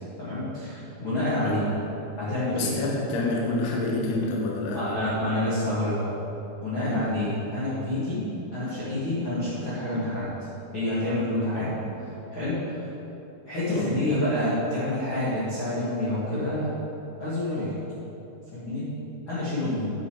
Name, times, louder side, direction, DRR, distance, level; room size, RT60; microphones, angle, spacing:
voice 1, 0.2-1.6 2.1-2.7 4.7-6.2 6.6-10.2 10.7-11.7 12.3-12.9 13.4-16.7 17.2-17.7 18.5-18.9 19.3-19.9, left 1 dB, 50° left, -12 dB, 1.4 m, -28 dB
voice 2, 1.4-1.7 2.5-5.1 6.9-7.3 9.9-10.1 11.5-11.9 13.7-14.1, left 2 dB, 70° left, -2 dB, 2.7 m, -29 dB
8.9 x 7.0 x 4.8 m, 2.9 s
omnidirectional pair, 5.9 m